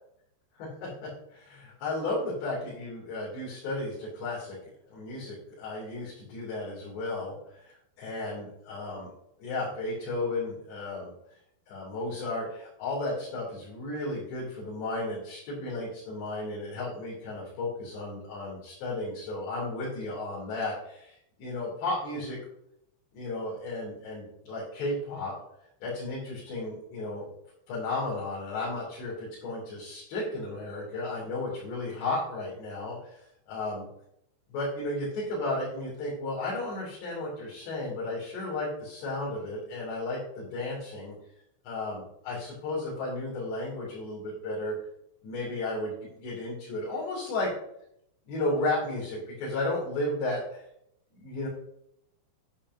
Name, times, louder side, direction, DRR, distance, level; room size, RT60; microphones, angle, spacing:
voice 1, 0.6-4.6 4.9-9.1 9.4-11.1 11.7-22.4 23.1-25.3 25.8-27.3 27.7-33.2 33.5-33.9 34.5-41.1 41.6-44.7 45.2-47.5 48.3-50.6 51.1-51.5, left 2 dB, 70° left, -7 dB, 4.8 m, -34 dB
10.5 x 8.6 x 2.7 m, 0.75 s
omnidirectional pair, 5.3 m